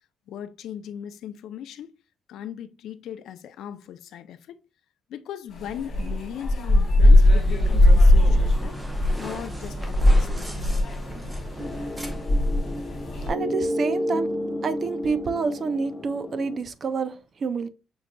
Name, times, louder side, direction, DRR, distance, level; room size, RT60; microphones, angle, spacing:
voice 1, 0.3-1.9 2.3-4.6 5.1-8.8 9.2-10.9, left 10 dB, 80° left, 0.5 m, -38 dB
sound 1, 5.5-13.3, left 1 dB, 50° left, 2.1 m, -20 dB
sound 2, 7.3-13.3, equal, 5° right, 0.8 m, -37 dB
sound 3, 11.6-16.6, left 1 dB, 25° left, 1.2 m, -31 dB
voice 2, 13.3-14.3 14.6-17.7, right 5 dB, 35° right, 0.4 m, -28 dB
6.2 x 3.8 x 2.2 m
cardioid pair, 170°, 0 cm